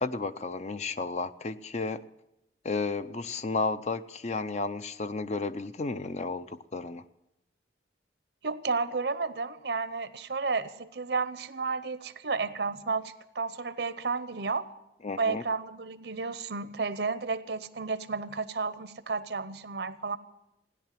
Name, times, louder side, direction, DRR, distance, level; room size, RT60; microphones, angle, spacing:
voice 1, 0.0-2.0 2.6-7.0 15.0-15.4, left 3 dB, 40° left, 12 dB, 0.5 m, -32 dB
voice 2, 8.4-14.7 15.2-20.2, right 4 dB, 70° right, 13 dB, 0.8 m, -32 dB
16.5 x 10.5 x 7.5 m, 0.90 s
head